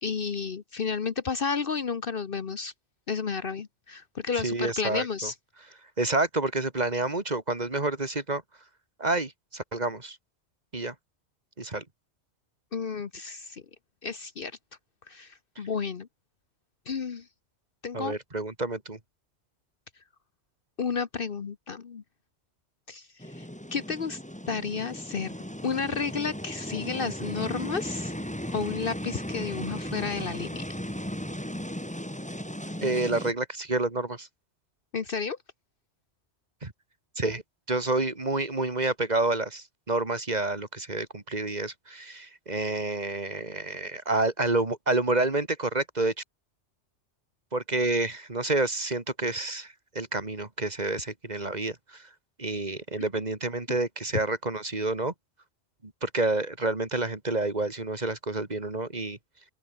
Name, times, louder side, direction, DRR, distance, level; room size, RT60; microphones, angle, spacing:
voice 1, 0.0-2.7 3.1-5.3 12.7-13.6 14.0-14.6 15.1-16.1 16.9-17.3 17.8-18.2 20.8-22.0 22.9-24.2 24.5-25.3 25.6-28.1 28.5-30.6 34.9-35.4 53.7-53.8, left 5 dB, 55° left, 1.2 m, -32 dB
voice 2, 4.4-5.3 6.0-8.4 9.0-10.2 10.7-10.9 11.6-11.8 17.9-19.0 32.8-34.3 36.6-36.7 37.2-37.4 37.7-46.1 47.5-52.1 52.4-55.1 55.8-59.2, right 2 dB, 40° right, 2.6 m, -29 dB
sound 1, 23.2-33.3, equal, 5° left, 3.4 m, -36 dB
open air
omnidirectional pair, 1.2 m